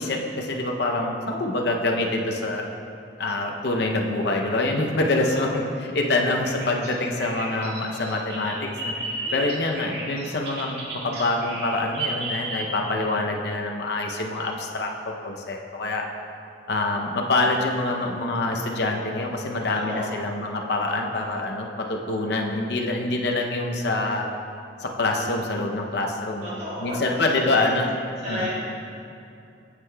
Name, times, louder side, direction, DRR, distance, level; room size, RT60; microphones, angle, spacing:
voice 1, 0.0-2.7 3.2-8.9 9.3-16.1 16.7-24.2 24.8-27.9 28.3-28.5, left 2 dB, 65° left, 1 dB, 0.7 m, -26 dB
voice 2, 5.2-5.6 9.2-9.5 19.7-20.3 26.4-27.7 28.2-28.5, left 1 dB, 40° right, -9 dB, 1.8 m, -34 dB
Bird vocalization bird call bird song, 6.4-13.0, right 2 dB, 65° right, 1.6 m, -33 dB
9.5 x 7.6 x 2.3 m, 2.5 s
head